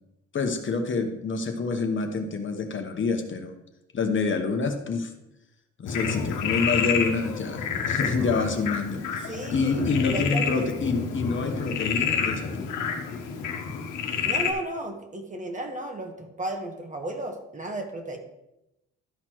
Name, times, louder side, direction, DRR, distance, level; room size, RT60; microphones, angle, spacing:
voice 1, 0.3-3.5 3.9-5.1 5.8-12.8, left 4 dB, 40° left, 4 dB, 1.1 m, -27 dB
Frog, 5.9-14.5, left 6 dB, 85° left, 1.2 m, -29 dB
voice 2, 9.3-9.9 10.1-10.7 14.2-18.2, right 2 dB, 25° right, 4 dB, 1.5 m, -34 dB
12.5 x 4.2 x 4.6 m, 0.89 s
cardioid pair, 90°, 30 cm